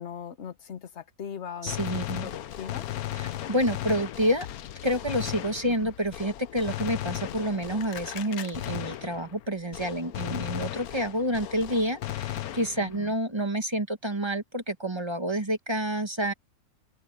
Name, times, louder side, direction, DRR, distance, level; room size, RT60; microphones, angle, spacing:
voice 1, 0.0-2.9 3.3-3.7 5.6-5.9 7.5-7.6 12.8-13.1, left 8 dB, 50° left, 1.2 m, -41 dB
voice 2, 1.6-2.3 3.1-4.5 4.8-16.3, equal, 20° right, 1.1 m, -29 dB
Gunshot gunfire, 1.7-9.5 9.7-13.1, left 13 dB, 75° left, 1.2 m, -36 dB
open air
omnidirectional pair, 1.6 m